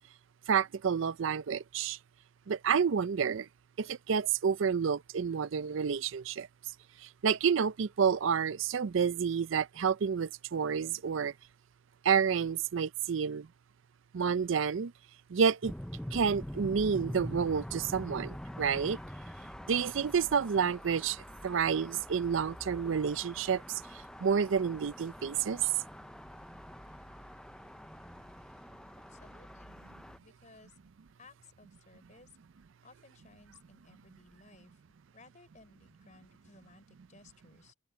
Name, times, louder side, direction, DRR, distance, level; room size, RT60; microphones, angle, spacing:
voice 1, 0.5-2.0 2.5-3.5 3.8-6.5 7.0-11.3 12.0-13.5 14.1-14.9 15.3-15.7 16.1-19.0 19.7-25.7, right 6 dB, 65° right, 0.4 m, -29 dB
sound 1, 15.6-30.2, equal, 5° left, 0.5 m, -45 dB
voice 2, 28.4-28.7 29.1-29.9 30.2-30.7 31.2-32.3 32.8-34.8 35.1-37.7, left 3 dB, 35° left, 4.3 m, -59 dB
open air
head